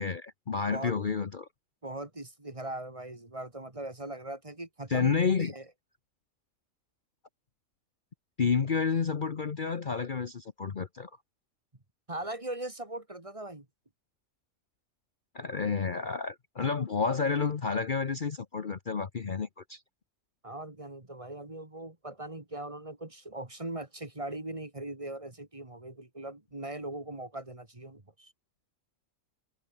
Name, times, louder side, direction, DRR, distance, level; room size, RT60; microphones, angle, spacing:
voice 1, 0.0-1.5 4.9-5.5 8.4-11.1 15.3-19.8, left 5 dB, 40° left, 1.0 m, -30 dB
voice 2, 1.8-5.6 12.1-13.7 20.4-28.3, right 1 dB, 25° right, 2.3 m, -40 dB
omnidirectional pair, 1.4 m